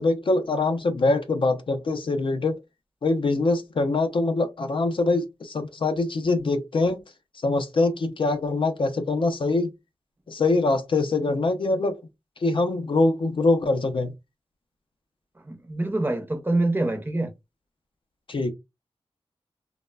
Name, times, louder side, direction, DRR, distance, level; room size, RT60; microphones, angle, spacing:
voice 1, 0.0-2.6 3.0-7.0 7.4-9.7 10.3-12.0 12.4-14.1 18.3-18.5, left 3 dB, 55° left, 0.4 m, -23 dB
voice 2, 15.5-17.3, right 2 dB, 20° right, 0.5 m, -25 dB
3.1 x 2.0 x 2.2 m
wide cardioid pair, 100°, 11 cm